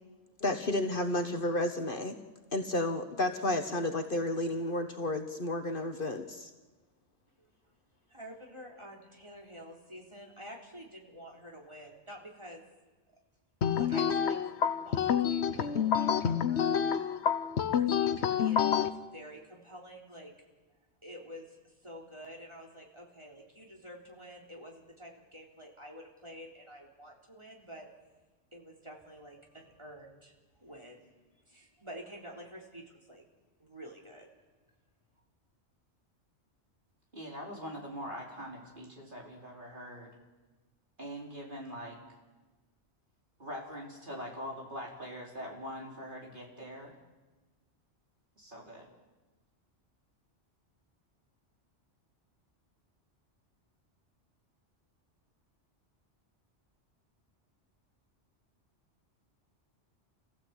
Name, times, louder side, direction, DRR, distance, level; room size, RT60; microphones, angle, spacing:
voice 1, 0.4-2.1 2.5-6.5, left 1 dB, 50° left, 6 dB, 1.5 m, -31 dB
voice 2, 8.1-12.6 13.7-16.7 17.7-20.3 21.0-21.5 21.8-27.9 28.5-30.3 30.6-31.1 31.5-33.2 33.6-34.3, equal, 25° right, -1 dB, 3.9 m, -49 dB
sound 1, 13.6-18.9, left 8 dB, 70° left, 1.2 m, -28 dB
voice 3, 37.1-40.1 41.0-42.0 43.4-46.9 48.4-48.9, equal, 45° right, -2 dB, 4.6 m, -43 dB
28.0 x 16.0 x 8.3 m, 1.2 s
omnidirectional pair, 1.2 m